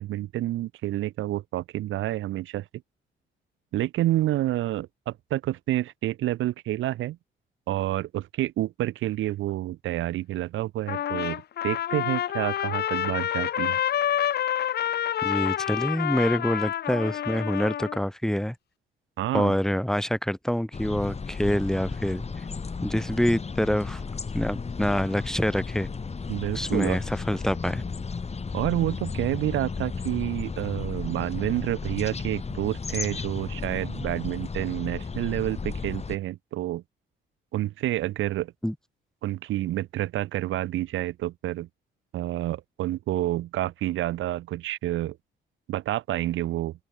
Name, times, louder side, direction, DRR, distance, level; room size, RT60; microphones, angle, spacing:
voice 1, 0.0-2.6 3.7-7.2 7.7-13.8 19.2-19.6 26.3-27.0 28.5-36.8 37.5-38.5 39.2-41.7 42.1-45.2 45.7-46.7, right 14 dB, 80° right, 0.9 m, -29 dB
Trumpet, 10.9-18.0, left 11 dB, 55° left, 0.7 m, -28 dB
voice 2, 15.2-18.5 19.3-22.2 22.8-24.0 24.3-25.9 26.5-27.8 38.6-38.7, equal, 5° left, 2.3 m, -26 dB
sound 1, 20.7-36.2, left 5 dB, 30° left, 3.9 m, -34 dB
cardioid pair, 90°, 20 cm